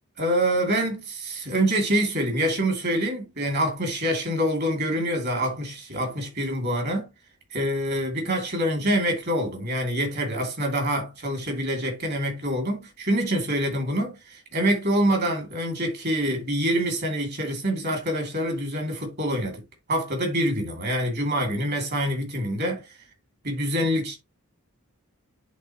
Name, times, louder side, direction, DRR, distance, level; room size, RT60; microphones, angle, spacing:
voice 1, 0.2-7.1 7.5-19.6 19.9-22.8 23.4-24.2, equal, 45° right, 2.8 m, -26 dB
10.5 x 3.7 x 3.0 m
head